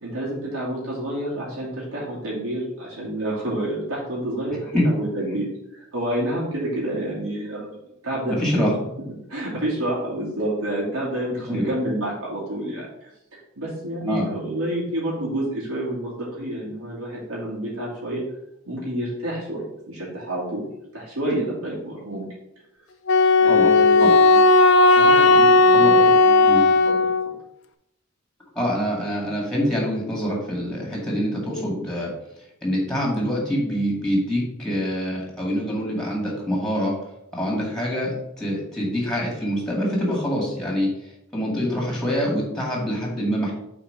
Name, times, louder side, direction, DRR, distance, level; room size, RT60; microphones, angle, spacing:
voice 1, 0.0-8.7 9.3-13.1 13.6-18.3 18.6-20.7 20.9-22.3 23.4-24.5 24.9-26.5 26.8-27.1, right 1 dB, 90° right, -6 dB, 2.5 m, -29 dB
voice 2, 8.4-8.9 11.4-11.7 14.0-14.3 23.5-23.7 24.0-24.1 25.7-25.9 26.4-26.6 28.6-32.1 32.6-36.9 37.3-43.5, equal, 5° left, -2 dB, 2.1 m, -25 dB
Wind instrument woodwind instrument, 23.1-27.3, left 3 dB, 60° left, 0.5 m, -15 dB
5.7 x 4.2 x 5.6 m, 0.82 s
head